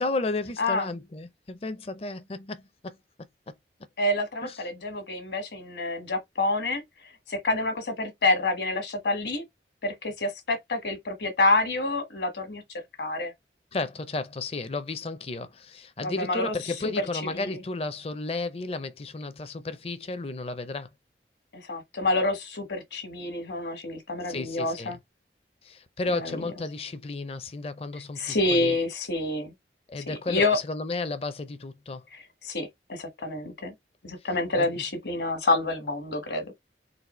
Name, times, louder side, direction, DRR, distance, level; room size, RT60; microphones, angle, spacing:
voice 1, 0.0-3.0 3.5-3.6 4.4-4.6 13.7-20.9 24.2-25.0 25.6-28.8 29.9-32.0 34.5-34.7, left 3 dB, 35° left, 0.5 m, -33 dB
voice 2, 4.0-6.8 7.3-9.4 9.8-12.6 13.0-13.3 16.0-16.5 17.0-17.6 21.5-25.0 26.1-26.4 28.2-29.5 30.1-30.6 32.1-33.7 34.0-36.4, left 2 dB, 75° left, 1.4 m, -28 dB
4.1 x 2.5 x 4.3 m
head